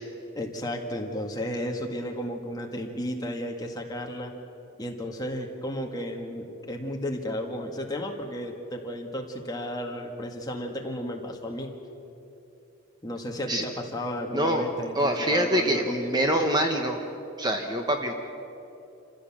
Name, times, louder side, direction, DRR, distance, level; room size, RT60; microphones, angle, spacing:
voice 1, 0.3-4.3 4.8-11.7 13.0-16.1, left 1 dB, 20° left, 1 dB, 1.8 m, -33 dB
voice 2, 14.3-14.6 14.9-17.0 17.4-18.1, right 1 dB, 20° right, 4 dB, 1.1 m, -25 dB
27.5 x 15.5 x 7.5 m, 3.0 s
head